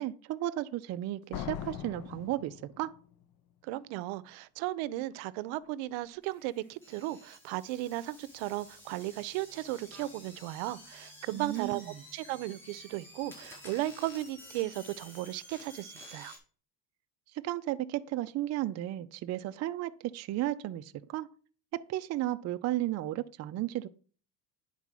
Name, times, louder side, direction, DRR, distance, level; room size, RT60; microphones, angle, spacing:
voice 1, 0.0-2.9 11.3-12.0 17.4-21.3 21.7-23.9, right 14 dB, 35° right, 0.4 m, -34 dB
Slam, 1.3-3.2, left 10 dB, 50° left, 0.6 m, -40 dB
voice 2, 3.6-11.8 12.1-16.3, right 16 dB, 80° right, 0.7 m, -36 dB
Electromagnetic Computer Sequence Mono Elektrousi, 6.2-16.4, left 1 dB, 5° left, 4.4 m, -52 dB
9.8 x 4.1 x 6.0 m
cardioid pair, 140°, 47 cm